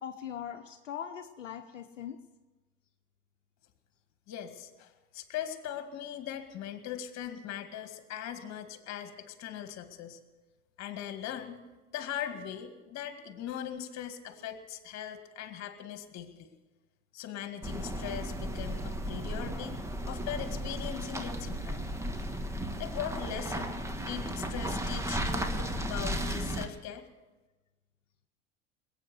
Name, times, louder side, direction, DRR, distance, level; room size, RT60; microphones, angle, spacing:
voice 1, 0.0-2.2, left 9 dB, 85° left, 6 dB, 0.8 m, -40 dB
voice 2, 4.3-10.2 10.8-11.6 11.9-16.5 17.1-19.8 20.0-21.8 22.8-27.0, left 10 dB, 45° left, 8 dB, 2.0 m, -40 dB
sound 1, 17.6-26.7, right 1 dB, 10° right, 1.4 m, -35 dB
20.5 x 9.0 x 7.8 m, 1.2 s
hypercardioid pair, 80°, 37 cm